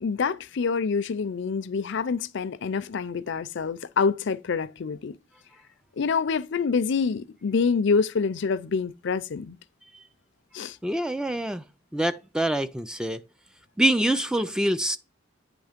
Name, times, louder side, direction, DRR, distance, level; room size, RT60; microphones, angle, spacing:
voice 1, 0.0-5.2 6.0-9.6 10.5-10.8, left 5 dB, 65° left, 0.5 m, -26 dB
voice 2, 10.8-11.6 11.9-13.2 13.8-15.0, right 1 dB, 5° right, 0.3 m, -25 dB
9.1 x 3.1 x 5.1 m
head